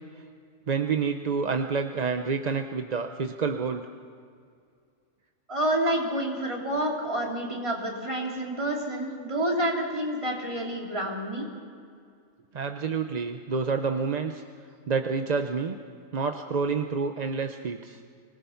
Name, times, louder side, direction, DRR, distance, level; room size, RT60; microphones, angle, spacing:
voice 1, 0.7-3.8 12.5-14.4 14.9-15.8 16.1-18.0, right 5 dB, 40° right, 6 dB, 0.7 m, -28 dB
voice 2, 5.5-11.5, right 1 dB, 20° right, -2 dB, 3.2 m, -28 dB
25.5 x 19.0 x 5.8 m, 2.2 s
omnidirectional pair, 1.4 m